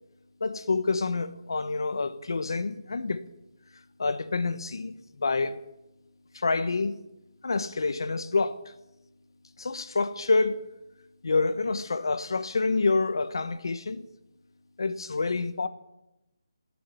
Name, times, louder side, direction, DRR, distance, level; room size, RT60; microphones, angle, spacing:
voice 1, 0.4-3.2 4.0-5.6 6.3-6.9 7.4-8.6 9.6-10.7 11.2-14.0 14.8-15.7, left 3 dB, 65° left, 1.2 m, -27 dB
18.5 x 7.6 x 9.3 m
hypercardioid pair, 175°, 3 cm